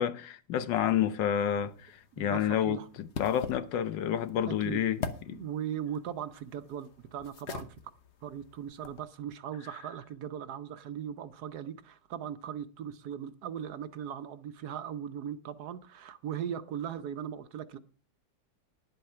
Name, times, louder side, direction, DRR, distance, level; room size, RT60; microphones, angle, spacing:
voice 1, 0.0-5.4, left 10 dB, 80° left, 1.6 m, -30 dB
sound 1, 1.4-9.1, left 6 dB, 45° left, 1.0 m, -44 dB
voice 2, 2.1-2.9 4.5-4.8 5.3-7.7 8.2-17.8, right 9 dB, 65° right, 1.2 m, -39 dB
10.5 x 7.9 x 5.6 m
omnidirectional pair, 1.9 m